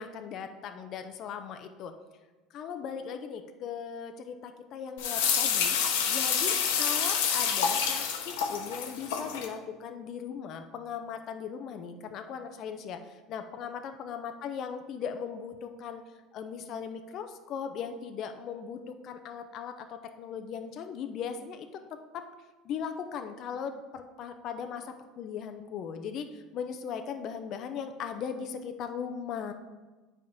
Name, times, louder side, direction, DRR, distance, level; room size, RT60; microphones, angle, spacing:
voice 1, 0.0-1.9 2.5-5.8 6.1-16.0 16.3-21.8 22.1-22.3 22.6-29.5, left 7 dB, 45° left, 7 dB, 0.6 m, -38 dB
sound 1, 5.0-9.5, left 7 dB, 90° left, 1.0 m, -28 dB
9.3 x 3.6 x 5.2 m, 1.2 s
supercardioid pair, 135°, 0 cm